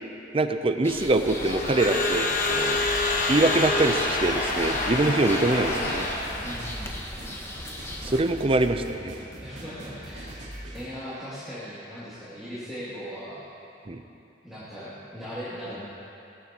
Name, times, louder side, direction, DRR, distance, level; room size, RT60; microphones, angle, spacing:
voice 1, 0.3-2.8 3.3-6.1 8.0-9.1 13.9-14.0, right 2 dB, 30° right, 8 dB, 0.6 m, -24 dB
sound 1, 0.8-8.2, left 1 dB, 15° left, 1.1 m, -38 dB
Crowd / Alarm, 1.2-6.8, left 2 dB, 50° left, 1.3 m, -27 dB
sound 2, 2.7-10.9, right 1 dB, 90° right, 2.6 m, -41 dB
voice 2, 6.4-6.9 9.4-13.5 14.4-15.9, equal, ahead, -14 dB, 2.5 m, -38 dB
18.5 x 13.5 x 3.0 m, 2.8 s
head